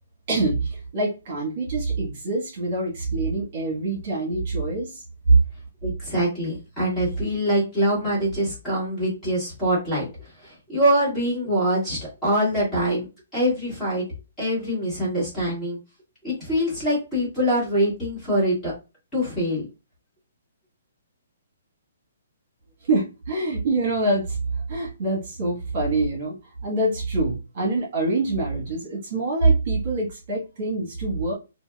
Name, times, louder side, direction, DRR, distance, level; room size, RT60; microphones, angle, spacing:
voice 1, 0.3-5.0 22.8-24.4 24.7-26.4 26.6-31.3, right 2 dB, 40° right, -2 dB, 1.2 m, -25 dB
voice 2, 5.8-10.1 10.4-13.1 13.3-14.0 14.4-15.8 16.2-18.7 19.1-19.6, equal, 10° left, -8 dB, 1.7 m, -24 dB
3.9 x 2.2 x 2.3 m, 0.28 s
hypercardioid pair, 170°, 0 cm